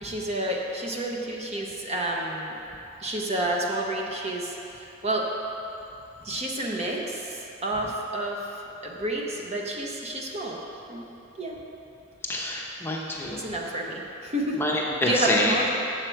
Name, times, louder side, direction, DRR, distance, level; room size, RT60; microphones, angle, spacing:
voice 1, 0.0-2.5 3.0-5.3 6.2-8.4 8.8-10.6 10.9-11.0 11.4-11.6 13.3-14.6 15.0-15.7, right 1 dB, 35° right, -1 dB, 0.8 m, -30 dB
voice 2, 12.3-13.5 14.6-15.6, left 1 dB, 10° left, -3 dB, 0.7 m, -27 dB
7.4 x 7.2 x 4.5 m, 2.8 s
head